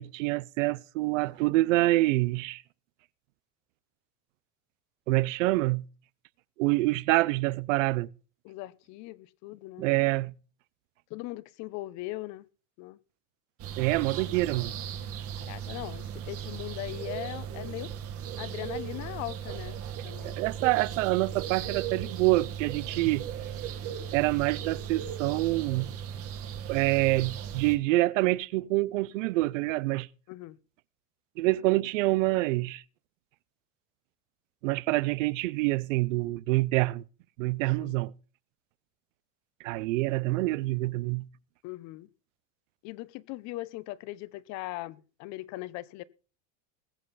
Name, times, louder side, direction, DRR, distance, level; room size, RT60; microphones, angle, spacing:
voice 1, 0.0-2.6 5.1-5.8 6.6-8.1 9.8-10.3 13.8-14.7 20.2-23.3 24.1-25.9 26.7-30.1 31.4-32.8 34.6-37.0 37.4-38.1 39.6-41.3, right 20 dB, 85° right, 0.7 m, -26 dB
voice 2, 8.4-10.1 11.1-12.5 12.8-13.0 15.3-17.9 18.4-20.4 22.9-23.2 30.3-30.6 37.8-38.0 41.6-42.1 42.8-46.0, left 17 dB, 50° left, 0.9 m, -40 dB
sound 1, 13.6-27.8, right 9 dB, 40° right, 1.8 m, -37 dB
20.5 x 7.7 x 4.1 m
supercardioid pair, 145°, 37 cm